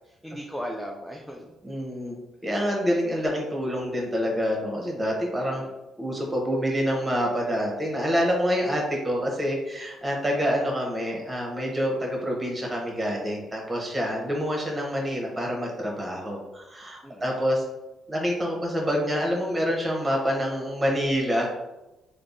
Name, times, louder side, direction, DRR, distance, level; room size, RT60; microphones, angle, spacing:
voice 1, 0.0-1.5 5.4-5.7 10.3-10.5 14.0-14.3 17.0-17.4, equal, ahead, -1 dB, 0.4 m, -38 dB
voice 2, 1.6-2.2 2.4-5.6 6.0-17.6 18.1-21.5, equal, 20° right, -1 dB, 1.0 m, -27 dB
3.3 x 2.0 x 2.5 m, 1.0 s
hypercardioid pair, 50°, 0 cm